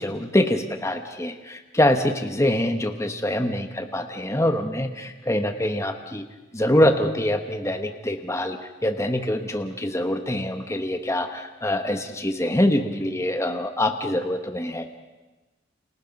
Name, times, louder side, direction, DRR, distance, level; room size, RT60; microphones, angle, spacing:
voice 1, 0.0-6.3 6.5-14.9, left 1 dB, 15° left, 6 dB, 1.2 m, -24 dB
30.0 x 28.5 x 5.4 m, 1.1 s
head